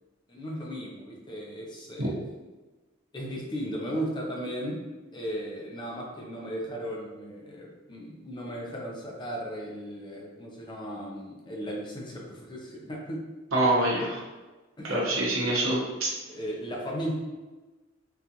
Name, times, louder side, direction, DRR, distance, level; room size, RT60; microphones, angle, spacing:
voice 1, 0.3-2.1 3.1-4.8 5.1-13.2 14.8-15.0 16.3-17.1, equal, 20° left, -2 dB, 0.5 m, -36 dB
voice 2, 13.5-14.2 14.8-16.1, right 1 dB, 75° right, -3 dB, 0.9 m, -25 dB
3.7 x 2.4 x 2.8 m, 1.2 s
head